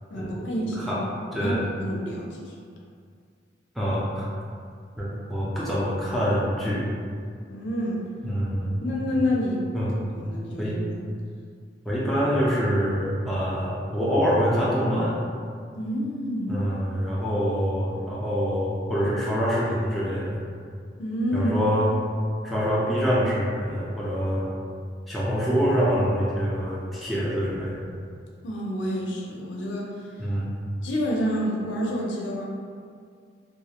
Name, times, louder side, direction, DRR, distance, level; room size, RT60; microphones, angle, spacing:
voice 1, 0.1-1.1 1.4-2.5 7.5-8.0 8.8-9.8 10.1-11.0 15.7-16.6 21.0-21.5 28.4-29.9 30.8-32.4, equal, 75° left, -3 dB, 0.4 m, -28 dB
voice 2, 1.3-1.6 3.8-4.3 5.0-6.9 8.2-8.8 9.7-9.9 10.6-10.7 11.9-15.2 16.5-20.4 21.3-21.9 22.4-24.5 25.1-27.8 30.2-30.5, equal, ahead, -8 dB, 0.3 m, -25 dB
2.3 x 2.0 x 2.8 m, 2.1 s
head